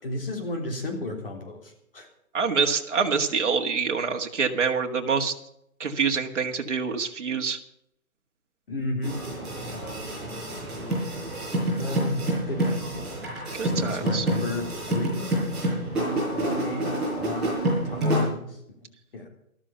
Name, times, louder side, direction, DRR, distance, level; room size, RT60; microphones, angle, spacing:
voice 1, 0.0-2.1 2.7-2.8 8.7-9.2 9.5-9.8 11.7-15.4 15.9-16.9 17.2-19.3, left 2 dB, 40° left, 2 dB, 3.5 m, -34 dB
voice 2, 2.3-5.3 5.8-7.6 13.6-14.2, right 5 dB, 55° right, 3 dB, 1.9 m, -26 dB
sound 1, 9.0-18.3, right 1 dB, ahead, 6.2 m, -28 dB
13.5 x 13.0 x 5.7 m, 0.76 s
hypercardioid pair, 180°, 43 cm